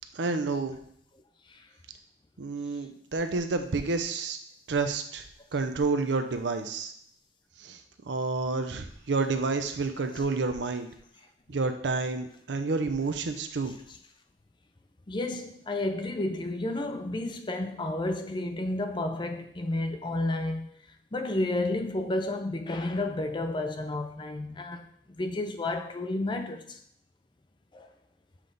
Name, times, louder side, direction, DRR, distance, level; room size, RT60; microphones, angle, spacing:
voice 1, 0.1-0.7 2.4-4.4 4.7-5.2 5.5-6.9 7.6-7.8 8.1-10.9 11.5-13.8, right 3 dB, 85° right, 0.6 m, -29 dB
voice 2, 15.1-20.7 21.1-24.9 25.2-26.6 27.7-27.9, left 2 dB, 25° left, 0.5 m, -31 dB
7.4 x 3.4 x 3.9 m
head